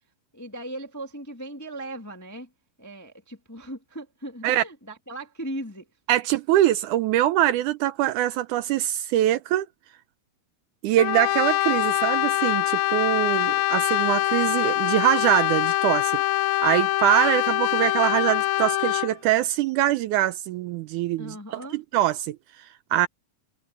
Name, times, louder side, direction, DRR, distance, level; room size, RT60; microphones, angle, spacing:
voice 1, 0.3-2.5 2.8-5.9 20.9-21.8, right 1 dB, 10° left, 1.0 m, -38 dB
voice 2, 6.1-9.7 10.8-16.2 16.6-23.1, right 13 dB, 80° right, 2.0 m, -23 dB
Brass instrument, 11.0-19.2, left 16 dB, 85° left, 2.3 m, -24 dB
omnidirectional pair, 3.9 m